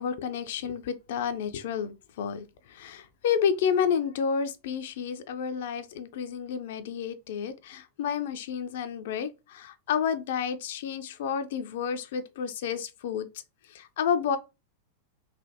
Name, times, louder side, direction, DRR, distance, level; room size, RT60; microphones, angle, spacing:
voice 1, 0.0-2.4 2.7-13.3 13.7-14.4, left 7 dB, 55° left, 0.4 m, -30 dB
3.2 x 2.1 x 2.7 m
figure-of-eight pair, 90°, 0 cm